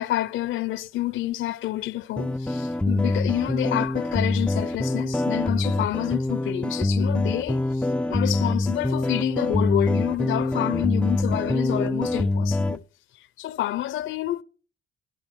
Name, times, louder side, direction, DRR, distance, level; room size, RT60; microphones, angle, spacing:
voice 1, 0.0-12.8 13.4-14.4, left 14 dB, 80° left, 0.7 m, -28 dB
sound 1, 2.2-12.8, left 2 dB, 5° left, 0.5 m, -25 dB
15.0 x 9.6 x 5.9 m
cardioid pair, 90°, 20 cm